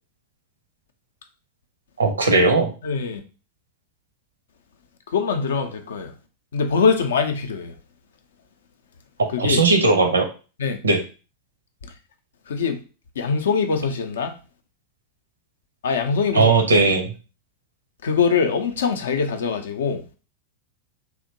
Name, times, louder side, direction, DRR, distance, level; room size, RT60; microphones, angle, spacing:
voice 1, 2.0-2.7 9.4-10.3 10.8-11.0 16.3-17.1, right 3 dB, 75° right, 0.5 m, -17 dB
voice 2, 2.8-3.2 5.1-6.1 6.5-7.7 9.3-9.6 10.6-10.8 12.5-12.8 13.2-14.3 15.8-16.5 18.0-20.0, left 5 dB, 65° left, 0.4 m, -23 dB
2.7 x 2.1 x 2.8 m
figure-of-eight pair, 90°, 0 cm